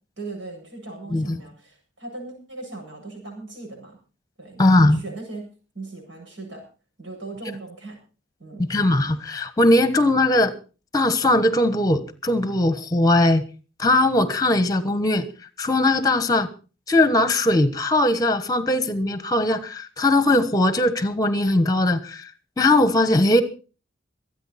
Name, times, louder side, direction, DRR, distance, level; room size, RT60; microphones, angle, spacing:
voice 1, 0.2-4.0 4.4-5.5 5.7-6.6 7.0-8.0 8.4-8.7, right 3 dB, 75° right, 1 dB, 7.7 m, -38 dB
voice 2, 4.6-5.0 8.7-10.5 10.9-13.4 13.8-15.3 15.6-16.5 16.9-22.3 22.6-23.4, left 1 dB, 20° left, 12 dB, 1.2 m, -19 dB
24.0 x 9.1 x 4.2 m, 0.35 s
head